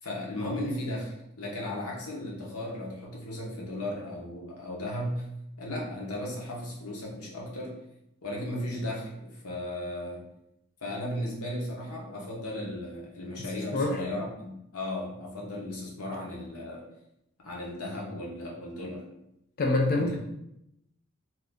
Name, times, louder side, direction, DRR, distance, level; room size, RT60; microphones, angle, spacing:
voice 1, 0.0-5.3 5.6-7.7 8.2-10.2 10.8-16.9 17.4-19.0 19.9-20.2, left 1 dB, 85° left, -2 dB, 0.9 m, -35 dB
voice 2, 19.6-20.2, left 2 dB, 45° left, 0 dB, 0.4 m, -25 dB
2.7 x 2.4 x 3.4 m, 0.80 s
head